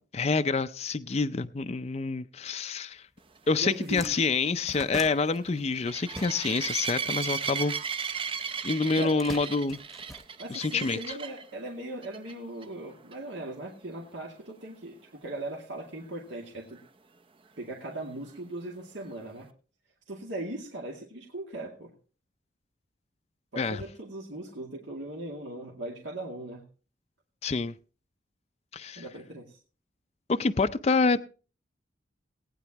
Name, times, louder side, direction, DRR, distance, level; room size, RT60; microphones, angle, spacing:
voice 1, 0.0-3.1 3.5-7.7 8.3-8.4 8.6-9.8 10.5-11.0 23.6-23.8 27.4-27.7 28.7-29.0 30.3-31.2, left 4 dB, 35° left, 10 dB, 0.5 m, -27 dB
sound 1, 3.2-3.3 3.6-6.8 7.0-8.2 8.9-10.9, equal, ahead, 1.0 m, -43 dB
sound 2, 3.5-11.4 12.0-12.3 12.6-12.7 13.1-13.2 16.8-16.9, right 6 dB, 30° right, 0.6 m, -35 dB
voice 2, 3.6-4.2 9.0-9.2 10.4-16.8 17.6-19.5 20.1-21.9 23.5-26.6 29.0-29.6, right 1 dB, 75° right, -2 dB, 2.2 m, -39 dB
19.0 x 9.4 x 3.0 m, 0.36 s
head